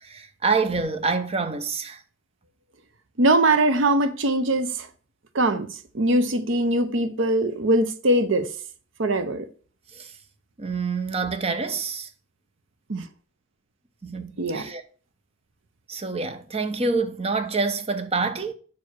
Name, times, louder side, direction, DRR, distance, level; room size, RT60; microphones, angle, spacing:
voice 1, 0.0-2.0 9.9-10.1 10.6-12.1 14.0-14.8 15.9-18.5, right 4 dB, 30° right, 0.8 m, -27 dB
voice 2, 3.2-4.9 5.3-8.5 9.0-9.5 12.9-13.0 14.4-14.7, right 1 dB, 70° right, 0.8 m, -22 dB
5.8 x 4.7 x 6.1 m
head